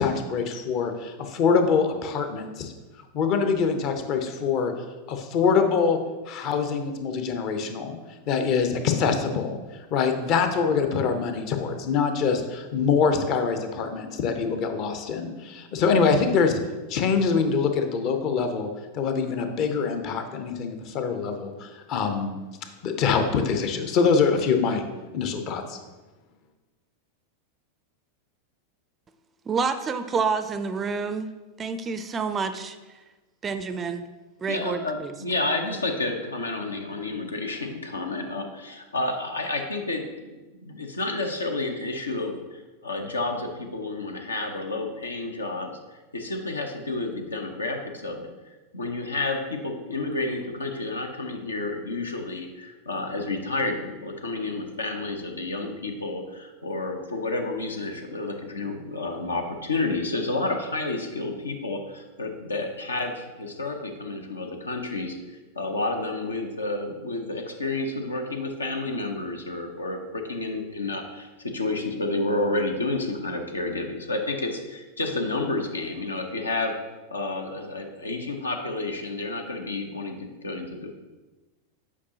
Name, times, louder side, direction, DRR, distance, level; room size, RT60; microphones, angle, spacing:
voice 1, 0.0-2.7 3.1-4.7 5.1-6.0 6.3-8.0 8.3-16.6 16.9-18.7 18.9-22.3 22.8-24.8 25.1-25.8, left 5 dB, 40° left, 6 dB, 0.7 m, -24 dB
voice 2, 29.5-31.3 31.6-32.8 33.4-34.0 34.4-35.1, right 5 dB, 20° right, 9 dB, 0.4 m, -28 dB
voice 3, 34.5-40.4 40.6-48.3 48.7-65.2 65.5-76.7 77.1-80.9, left 2 dB, 75° left, 4 dB, 0.7 m, -30 dB
8.4 x 4.8 x 2.8 m, 1.2 s
figure-of-eight pair, 90°, 0 cm